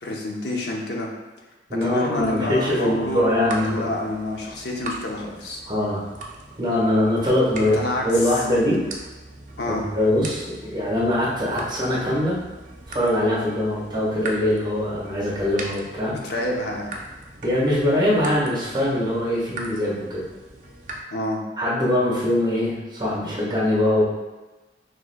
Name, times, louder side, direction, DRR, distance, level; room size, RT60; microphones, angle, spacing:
voice 1, 0.0-1.1 1.8-5.6 7.6-8.6 9.6-9.9 16.2-16.9 21.1-21.4, left 1 dB, 65° left, -1 dB, 0.8 m, -28 dB
voice 2, 1.7-3.9 5.7-6.0 6.6-8.8 9.7-12.4 12.9-16.2 17.4-20.2 21.6-24.0, left 1 dB, 25° right, -6 dB, 1.3 m, -22 dB
sound 1, 2.2-21.0, right 2 dB, 45° right, 0.6 m, -40 dB
6.2 x 3.1 x 2.2 m, 1.2 s
head